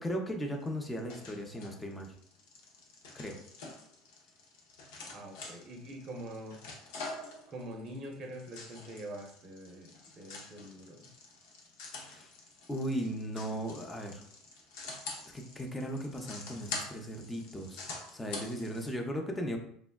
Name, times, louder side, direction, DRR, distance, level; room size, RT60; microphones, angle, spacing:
voice 1, 0.0-2.1 3.1-3.4 12.0-12.3 12.7-14.2 15.3-19.6, equal, 15° left, 2 dB, 0.5 m, -37 dB
sound 1, 0.6-18.9, left 3 dB, 75° left, 0.6 m, -46 dB
voice 2, 5.1-6.6 7.5-11.1, right 1 dB, 45° right, 2 dB, 0.6 m, -44 dB
3.5 x 2.1 x 2.2 m, 0.64 s
hypercardioid pair, 90°, 0 cm